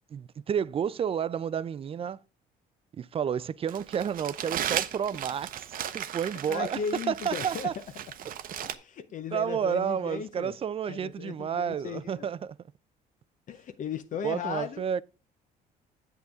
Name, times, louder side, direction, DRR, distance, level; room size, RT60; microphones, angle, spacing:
voice 1, 0.1-2.2 2.9-6.8 7.1-7.7 8.2-8.3 9.3-12.6 14.2-15.0, right 8 dB, 35° right, 0.4 m, -31 dB
Crumpling crinkling, 3.7-8.7, right 10 dB, 55° right, 0.8 m, -36 dB
voice 2, 6.5-7.8 8.6-10.6 10.9-12.3 13.5-14.8, left 7 dB, 50° left, 0.7 m, -36 dB
8.2 x 8.0 x 3.6 m
cardioid pair, 110°, 17 cm